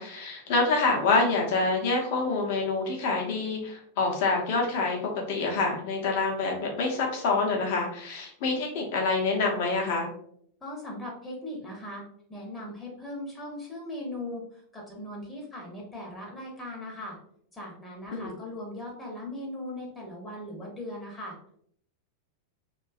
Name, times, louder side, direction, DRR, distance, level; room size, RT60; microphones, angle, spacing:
voice 1, 0.0-10.1 18.1-18.3, left 3 dB, 50° left, 0 dB, 0.7 m, -26 dB
voice 2, 10.6-12.0 12.3-17.2 17.5-21.4, left 1 dB, 10° left, -3 dB, 0.8 m, -39 dB
2.6 x 2.3 x 2.3 m, 0.67 s
figure-of-eight pair, 90°, 0 cm